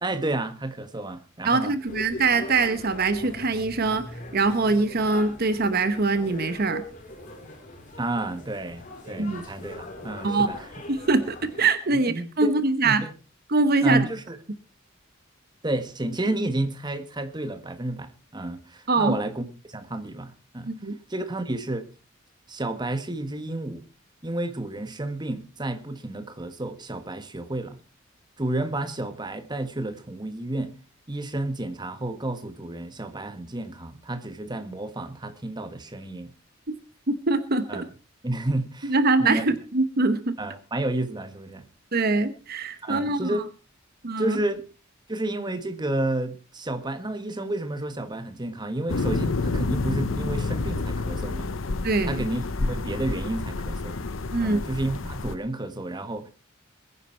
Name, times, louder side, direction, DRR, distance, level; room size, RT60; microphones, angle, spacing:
voice 1, 0.0-1.7 8.0-10.6 11.9-12.5 12.8-13.1 13.8-14.4 15.6-20.7 21.1-21.9 22.5-23.8 24.2-27.8 28.4-30.7 31.1-36.3 37.7-37.8 38.2-38.9 39.2-39.4 40.4-41.6 42.8-43.4 44.2-44.6 45.1-51.5 52.0-54.0 54.4-56.3, right 2 dB, 20° right, 1.5 m, -31 dB
voice 2, 1.4-4.1 4.3-6.8 9.2-9.4 10.2-10.5 10.9-13.0 13.5-14.1 18.9-19.2 20.7-21.0 37.1-37.8 38.8-40.3 41.9-43.4 44.0-44.4 51.8-52.2 54.3-54.6, right 3 dB, 50° right, 1.0 m, -23 dB
sound 1, 1.9-11.7, left 1 dB, 40° left, 3.9 m, -41 dB
sound 2, 48.9-55.4, left 3 dB, 75° left, 0.8 m, -29 dB
21.5 x 9.8 x 4.5 m
head